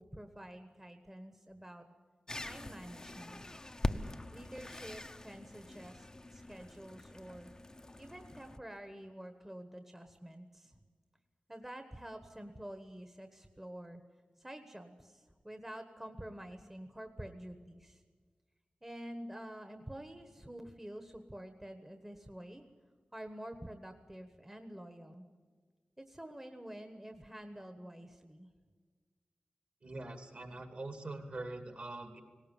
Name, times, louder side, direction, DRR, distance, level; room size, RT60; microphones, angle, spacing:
voice 1, 0.0-1.9 2.4-3.4 4.3-7.5 8.0-10.8 11.5-14.0 14.4-18.0 18.8-22.6 23.1-25.3 26.0-28.5, right 1 dB, 10° right, 6 dB, 1.3 m, -48 dB
sound 1, 2.3-8.6, left 1 dB, 20° left, 0.8 m, -43 dB
voice 2, 29.8-32.2, right 2 dB, 50° right, 6 dB, 2.7 m, -43 dB
18.5 x 18.5 x 9.1 m, 1.5 s
wide cardioid pair, 115°, 3 cm